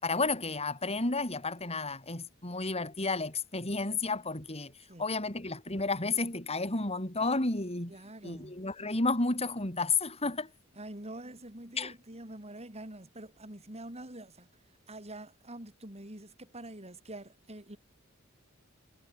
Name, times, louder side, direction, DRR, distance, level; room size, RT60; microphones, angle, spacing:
voice 1, 0.0-7.9 8.2-10.5 11.8-11.9, left 3 dB, 30° left, 4.6 m, -32 dB
voice 2, 7.9-8.6 10.8-14.5 14.9-17.8, right 1 dB, 30° right, 5.6 m, -46 dB
head